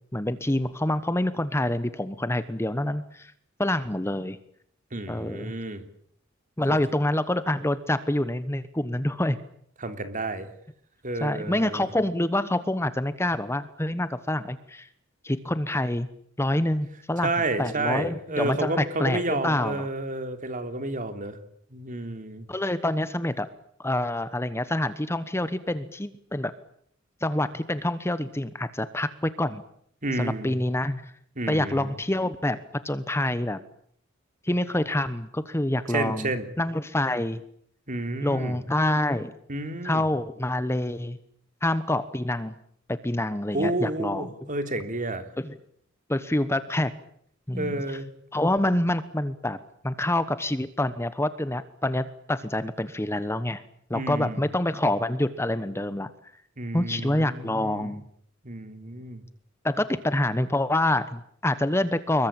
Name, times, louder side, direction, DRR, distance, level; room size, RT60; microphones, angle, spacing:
voice 1, 0.1-3.3 3.6-4.4 5.1-5.5 6.6-9.4 11.2-14.9 15.2-16.1 16.4-17.3 17.6-19.9 22.5-23.5 23.8-26.5 27.2-29.6 30.1-31.0 31.5-33.6 34.4-36.3 36.6-37.4 38.2-39.3 39.8-41.2 41.6-42.5 42.9-44.3 45.4-45.6 46.1-46.9 47.5-48.0 48.3-49.6 49.8-53.6 53.9-56.1 56.7-58.0 59.6-62.3, left 1 dB, 15° left, 13 dB, 1.1 m, -26 dB
voice 2, 4.9-5.8 6.7-6.8 9.8-10.5 11.0-11.8 17.2-21.4 21.7-22.4 30.0-30.5 31.4-31.9 35.9-36.5 37.9-38.6 39.5-40.0 43.5-45.2 47.5-48.1 53.9-54.5 56.6-58.0 58.4-59.2, right 2 dB, 40° right, 8 dB, 3.3 m, -30 dB
26.5 x 22.5 x 8.9 m, 0.67 s
head